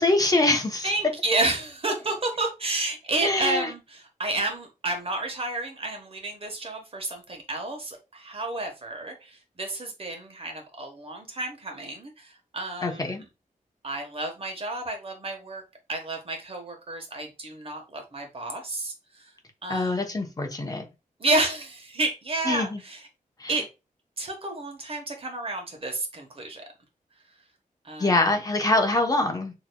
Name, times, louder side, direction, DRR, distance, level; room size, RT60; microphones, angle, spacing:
voice 1, 0.0-0.9 3.2-3.7 12.8-13.2 19.7-20.8 22.5-22.8 23.4-23.5 28.0-29.5, left 2 dB, 25° left, 0.9 m, -24 dB
voice 2, 0.8-13.3 13.8-15.6 15.9-19.3 19.6-20.4 21.2-23.1 23.5-23.7 24.2-26.6 27.8-28.2, right 2 dB, 40° right, 1.3 m, -31 dB
6.5 x 3.0 x 2.3 m
wide cardioid pair, 120°, 15 cm